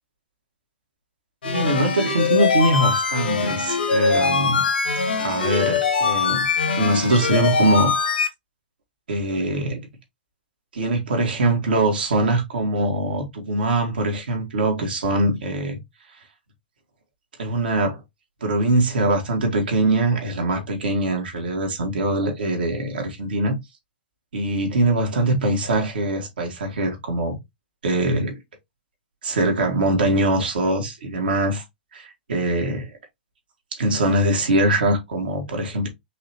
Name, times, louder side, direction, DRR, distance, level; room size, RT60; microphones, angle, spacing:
sound 1, 1.4-8.3, left 5 dB, 75° left, 1.7 m, -22 dB
voice 1, 1.4-4.6 5.2-6.4 6.8-7.9 9.1-9.8 10.7-15.8 17.4-18.0 18.4-23.6 24.3-27.4 27.8-28.3 29.2-31.6 31.9-32.9 33.7-35.9, right 1 dB, 70° right, 2.1 m, -22 dB
5.4 x 3.3 x 2.8 m
figure-of-eight pair, 115°, 5 cm